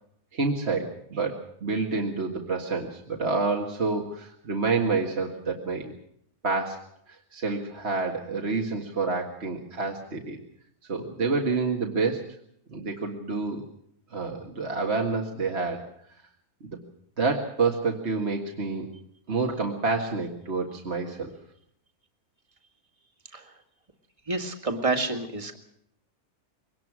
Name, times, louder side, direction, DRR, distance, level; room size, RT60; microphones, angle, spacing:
voice 1, 0.3-5.9 6.4-6.9 7.3-10.4 10.9-12.3 12.7-13.6 14.1-15.9 16.6-16.8 17.2-18.9 19.3-21.3, right 4 dB, 45° right, 1 dB, 2.1 m, -28 dB
voice 2, 24.3-25.6, right 3 dB, 20° right, 5 dB, 2.1 m, -29 dB
23.0 x 19.0 x 6.2 m, 0.71 s
omnidirectional pair, 1.6 m